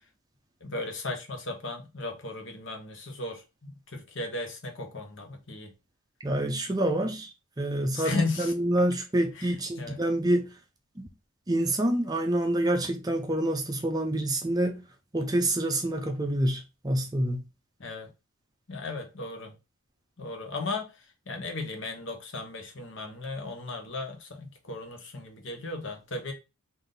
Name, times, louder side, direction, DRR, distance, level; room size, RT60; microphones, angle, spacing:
voice 1, 0.6-5.7 7.9-8.5 9.3-9.5 9.8-10.0 17.8-18.1 18.7-19.5 20.2-26.3, left 3 dB, 60° left, 1.0 m, -35 dB
voice 2, 6.2-10.5 11.0-11.1 11.5-14.8 15.1-17.4, right 1 dB, 20° right, 0.5 m, -27 dB
3.5 x 2.6 x 3.8 m
head